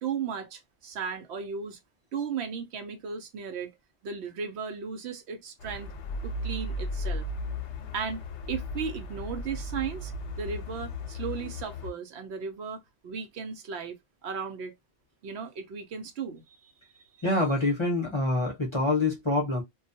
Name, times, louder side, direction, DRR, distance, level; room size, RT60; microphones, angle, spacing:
voice 1, 0.0-1.8 2.1-3.7 4.0-5.9 6.2-7.3 7.9-10.1 10.4-13.9 14.2-14.7 15.2-16.7, right 6 dB, 75° right, 0.9 m, -36 dB
sound 1, 5.6-11.9, left 1 dB, 85° left, 0.9 m, -35 dB
voice 2, 17.2-19.6, left 2 dB, 30° left, 0.7 m, -26 dB
2.3 x 2.3 x 2.6 m
omnidirectional pair, 1.1 m